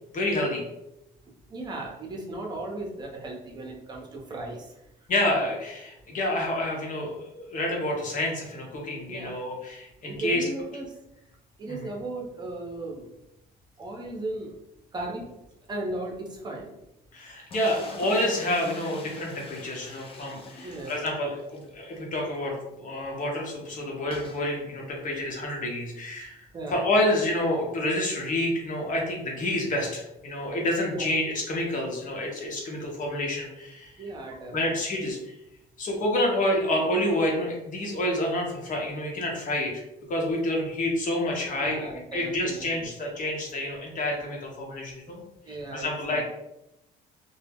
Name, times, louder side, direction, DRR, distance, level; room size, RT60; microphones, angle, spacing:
voice 1, 0.1-0.6 5.1-10.4 11.7-11.9 17.1-33.9 34.5-35.4 35.8-39.8 40.1-45.2 45.5-46.2, left 1 dB, 50° left, -1 dB, 0.9 m, -28 dB
voice 2, 1.5-4.8 9.1-9.4 10.1-10.9 11.6-13.1 13.8-14.5 14.9-15.3 15.7-16.7 20.6-21.0 26.5-26.8 30.9-31.1 34.0-34.7 41.6-42.9 45.4-46.2, right 2 dB, 25° right, -1 dB, 0.7 m, -36 dB
sound 1, 17.5-21.7 22.0-22.1 22.3-22.4 24.1-24.5, left 3 dB, 35° left, 0.4 m, -44 dB
2.2 x 2.0 x 3.4 m, 0.87 s
cardioid pair, 110°, 17 cm